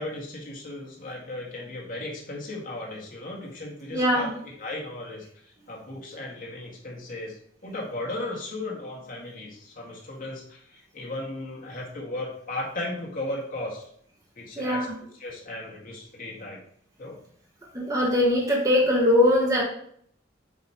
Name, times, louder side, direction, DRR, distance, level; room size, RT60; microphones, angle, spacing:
voice 1, 0.0-7.4 7.6-13.8 14.4-14.9 15.2-16.6 17.0-17.2, left 2 dB, 50° left, -3 dB, 2.1 m, -36 dB
voice 2, 3.9-4.3 14.6-14.9 17.7-19.6, left 1 dB, 20° right, -3 dB, 1.2 m, -21 dB
8.0 x 3.3 x 4.4 m, 0.62 s
head